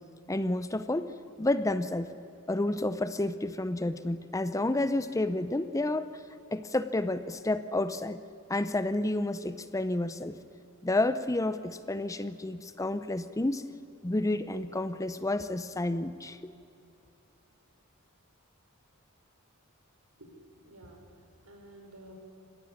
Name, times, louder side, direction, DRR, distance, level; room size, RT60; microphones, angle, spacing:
voice 1, 0.3-1.1 1.4-2.1 2.5-6.1 6.5-8.2 8.5-10.4 10.8-13.6 14.0-16.5, left 2 dB, 15° left, 12 dB, 0.6 m, -30 dB
voice 2, 20.6-22.1, right 1 dB, 80° right, 2 dB, 5.0 m, -52 dB
27.5 x 16.0 x 9.7 m, 2.7 s
head